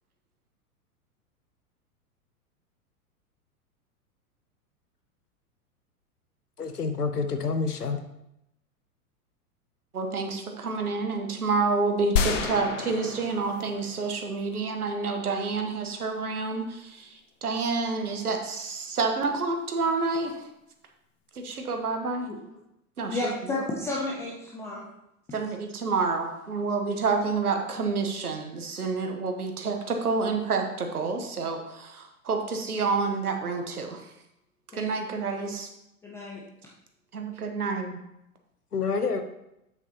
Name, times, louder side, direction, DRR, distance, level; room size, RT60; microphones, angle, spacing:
voice 1, 6.6-8.0 38.7-39.2, left 4 dB, 85° left, 7 dB, 1.0 m, -28 dB
voice 2, 9.9-20.5 21.3-22.3 23.0-23.3 25.3-34.1 34.7-35.7 37.1-38.0, right 4 dB, 75° right, 4 dB, 1.2 m, -29 dB
sound 1, 12.2-14.4, left 7 dB, 55° left, 1.0 m, -30 dB
voice 3, 23.1-24.8 25.3-25.4 34.7-34.9 36.0-36.4, left 2 dB, 5° left, -4 dB, 0.4 m, -32 dB
8.1 x 7.2 x 2.8 m, 0.85 s
figure-of-eight pair, 100°, 45 cm